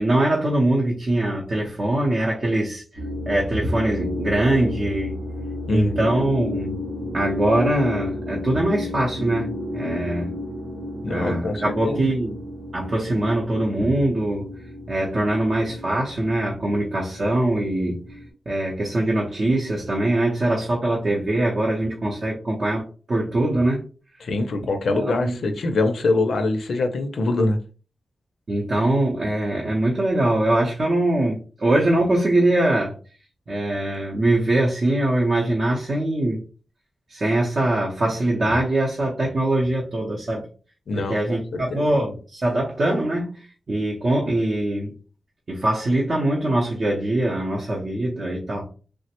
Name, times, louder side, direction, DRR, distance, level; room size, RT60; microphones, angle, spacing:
voice 1, 0.0-2.8 3.3-5.2 5.7-6.8 7.1-10.3 11.1-12.4 12.7-14.5 14.9-18.2 18.5-23.9 24.9-25.3 28.5-32.9 33.5-36.4 37.1-40.5 40.9-44.9 45.5-48.7, right 1 dB, 45° right, -3 dB, 0.6 m, -22 dB
sound 1, 2.9-18.3, left 1 dB, 85° right, 1.4 m, -32 dB
voice 2, 5.7-6.1 11.0-12.1 24.2-27.6 40.9-41.9, left 2 dB, 75° left, 6 dB, 0.4 m, -24 dB
3.2 x 2.1 x 2.9 m, 0.37 s
wide cardioid pair, 140°, 0 cm